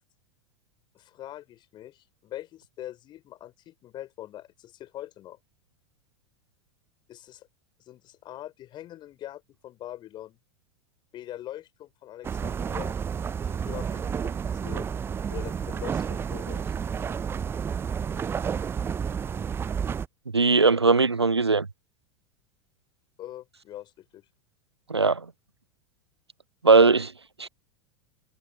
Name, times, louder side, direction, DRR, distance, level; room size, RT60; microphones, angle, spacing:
voice 1, 0.9-5.4 7.1-7.5 7.9-10.4 11.1-13.0 13.4-14.9 15.3-16.7 23.2-24.2, left 13 dB, 35° left, 5.8 m, -43 dB
sound 1, 12.2-20.1, right 7 dB, 15° right, 0.6 m, -31 dB
voice 2, 20.3-21.7 24.9-25.3 26.6-27.1 27.4-27.5, right 4 dB, 85° right, 0.7 m, -19 dB
figure-of-eight pair, 85°, 14 cm